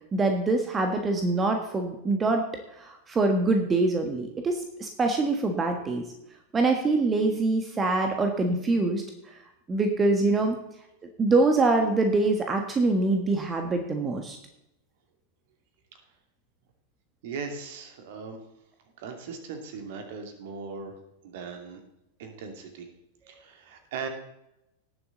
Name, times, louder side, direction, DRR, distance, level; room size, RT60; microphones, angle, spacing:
voice 1, 0.1-2.4 2.8-6.0 6.5-9.0 9.7-10.6 11.2-14.4, right 3 dB, 20° right, 4 dB, 1.4 m, -24 dB
voice 2, 17.2-18.4 19.0-20.9 21.2-21.8 22.2-22.9 23.3-24.1, right 5 dB, 55° right, 5 dB, 2.3 m, -38 dB
18.5 x 7.1 x 3.9 m, 0.84 s
figure-of-eight pair, 90°, 0 cm